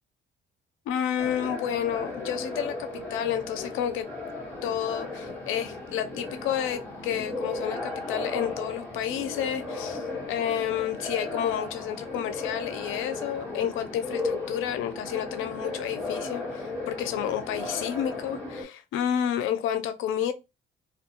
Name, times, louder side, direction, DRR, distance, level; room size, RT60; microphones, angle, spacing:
voice 1, 0.9-4.1 4.6-20.3, left 9 dB, 90° left, 0.5 m, -30 dB
sound 1, 1.2-18.6, left 3 dB, 5° left, 1.3 m, -35 dB
2.3 x 2.3 x 2.9 m
cardioid pair, 90°, 20 cm